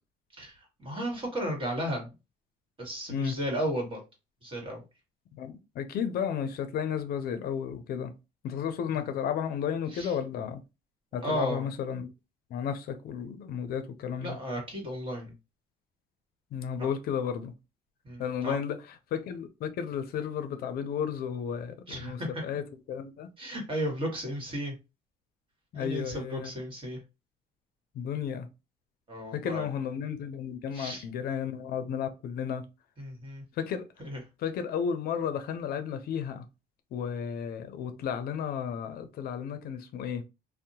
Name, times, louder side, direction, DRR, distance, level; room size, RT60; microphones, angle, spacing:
voice 1, 0.4-2.1 2.8-4.0 4.4-4.8 9.9-10.1 11.2-11.6 14.2-15.3 16.8-16.9 18.0-18.5 21.9-22.4 23.4-24.7 25.7-27.0 29.1-29.7 30.7-31.0 33.0-33.4 34.0-34.2, equal, 30° right, 1.4 m, -34 dB
voice 2, 5.3-8.1 8.4-10.6 11.1-12.1 12.5-14.4 16.5-17.5 18.2-23.3 25.7-26.5 27.9-28.5 29.3-32.6 33.5-33.9 34.4-36.4 36.9-40.2, left 7 dB, 65° left, 0.5 m, -33 dB
2.7 x 2.1 x 2.8 m
cardioid pair, 110°, 17 cm